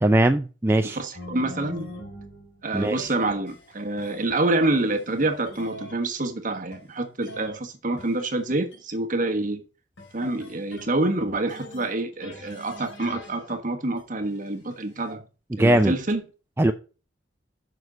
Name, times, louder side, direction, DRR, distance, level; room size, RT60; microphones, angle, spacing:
voice 1, 0.0-1.0 2.7-3.1 15.6-15.9 16.6-16.7, right 1 dB, 15° right, 0.4 m, -20 dB
voice 2, 0.8-1.9 2.6-9.6 10.1-15.2 15.6-16.2, right 2 dB, 45° right, 1.3 m, -27 dB
sound 1, 1.1-4.4 4.7-6.0 6.7-7.6 8.0-8.8 10.0-11.0 11.5-13.6 14.0-15.1, left 1 dB, 75° left, 4.2 m, -43 dB
7.4 x 6.2 x 5.2 m
head